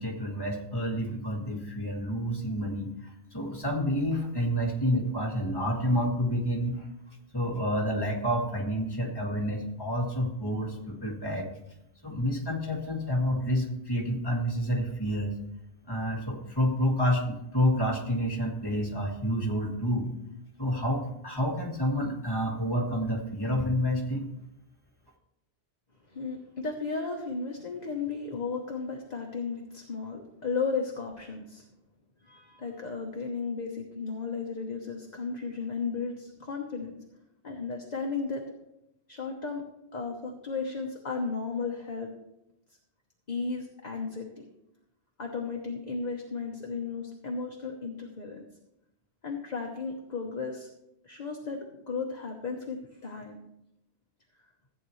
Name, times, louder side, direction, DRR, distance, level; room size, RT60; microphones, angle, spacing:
voice 1, 0.0-6.9 7.3-11.5 12.0-15.4 15.9-20.1 20.6-24.3, equal, 20° left, -1 dB, 1.6 m, -29 dB
voice 2, 26.1-31.6 32.2-37.0 37.4-38.4 39.1-39.6 39.9-42.1 43.3-44.3 45.2-48.4 49.2-50.7 51.0-53.4, left 4 dB, 40° left, 0 dB, 1.1 m, -34 dB
14.5 x 8.6 x 3.2 m, 0.86 s
omnidirectional pair, 1.2 m